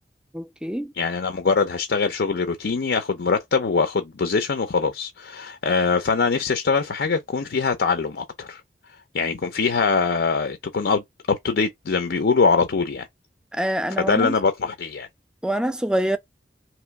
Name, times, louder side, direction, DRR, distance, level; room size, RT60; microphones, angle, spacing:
voice 1, 0.3-0.9 13.5-14.4 15.4-16.2, right 1 dB, 5° right, 0.4 m, -25 dB
voice 2, 1.0-8.6 9.1-13.1 14.0-15.1, left 4 dB, 75° left, 0.5 m, -23 dB
3.0 x 3.0 x 4.5 m
head